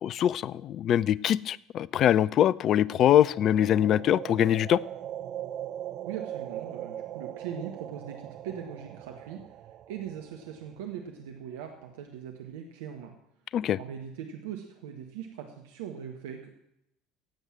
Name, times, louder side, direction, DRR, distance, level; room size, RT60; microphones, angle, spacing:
voice 1, 0.0-4.8 13.5-13.8, left 11 dB, 50° left, 23 dB, 0.5 m, -23 dB
sound 1, 2.8-10.8, right 11 dB, 50° right, 0.7 m, -40 dB
voice 2, 6.0-13.1 13.8-16.5, right 8 dB, 70° right, 3 dB, 1.6 m, -40 dB
17.0 x 8.1 x 7.5 m, 0.79 s
figure-of-eight pair, 65°, 0 cm